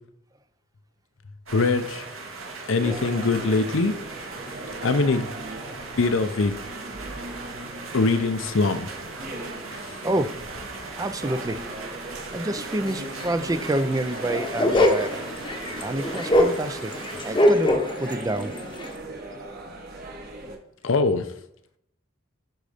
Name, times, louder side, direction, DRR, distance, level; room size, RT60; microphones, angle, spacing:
voice 1, 1.5-2.1 2.7-3.9 4.8-5.3 6.0-6.6 7.9-8.9 9.7-9.8 20.8-21.3, left 3 dB, 65° left, 10 dB, 0.6 m, -22 dB
sound 1, 1.5-17.4, right 3 dB, 75° right, 1.8 m, -39 dB
sound 2, 2.8-20.6, right 1 dB, 45° right, 1.3 m, -39 dB
voice 2, 11.0-11.6 12.3-15.1 15.8-16.9 17.2-17.7 18.0-18.5, right 1 dB, 15° right, 10 dB, 0.4 m, -27 dB
sound 3, 12.9-13.0 13.3-13.4 13.6-13.7 14.0-18.1 18.4-18.9, left 1 dB, 20° left, 0.9 m, -22 dB
10.0 x 4.0 x 5.0 m, 0.75 s
head